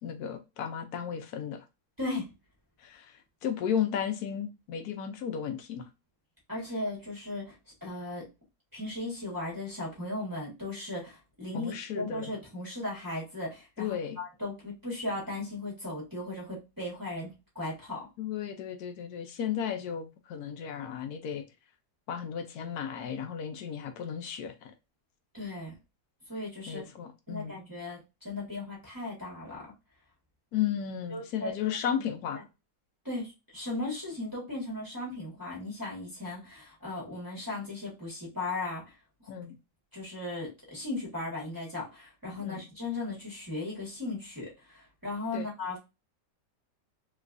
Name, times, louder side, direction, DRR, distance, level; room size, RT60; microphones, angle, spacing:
voice 1, 0.0-1.6 2.8-5.8 11.5-12.3 13.8-14.2 18.2-21.4 22.1-24.7 26.7-27.6 30.5-32.5 39.3-39.5 42.4-42.6 45.3-45.5, left 8 dB, 70° left, 1.1 m, -34 dB
voice 2, 6.5-7.5 7.8-8.3 8.7-18.1 25.3-25.7 26.3-26.9 27.3-29.7 31.1-31.8 32.3-32.4 33.0-38.8 39.9-45.8, left 2 dB, 15° right, 1.3 m, -37 dB
3.2 x 3.0 x 2.5 m
omnidirectional pair, 1.8 m